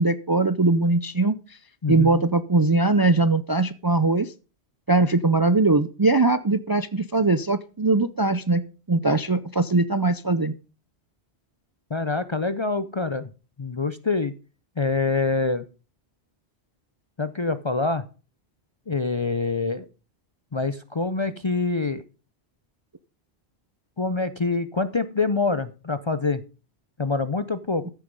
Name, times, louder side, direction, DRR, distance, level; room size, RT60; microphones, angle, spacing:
voice 1, 0.0-1.3 1.9-4.3 4.9-8.6 8.9-10.5, right 3 dB, 30° right, 13 dB, 0.4 m, -21 dB
voice 2, 1.8-2.2 11.9-13.3 13.6-14.3 14.8-15.6 17.2-18.0 18.9-19.9 20.5-22.0 24.0-26.4 27.0-27.8, left 3 dB, 35° left, 12 dB, 0.5 m, -25 dB
14.0 x 7.0 x 5.3 m, 0.35 s
omnidirectional pair, 1.1 m